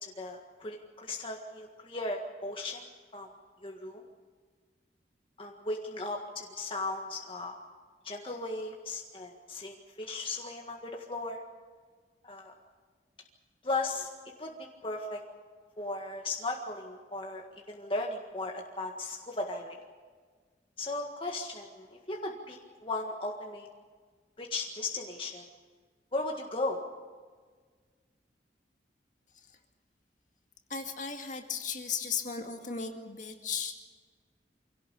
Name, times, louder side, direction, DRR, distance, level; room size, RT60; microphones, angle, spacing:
voice 1, 0.0-2.8 3.1-3.3 3.6-4.0 5.4-7.5 8.0-11.4 12.2-12.5 13.6-14.1 14.4-15.2 15.8-19.8 20.8-23.7 24.4-25.5 26.1-26.8, left 2 dB, 30° left, 1 dB, 1.7 m, -36 dB
voice 2, 30.7-33.8, left 6 dB, 45° left, 4 dB, 2.2 m, -36 dB
25.5 x 17.5 x 8.3 m, 1.5 s
head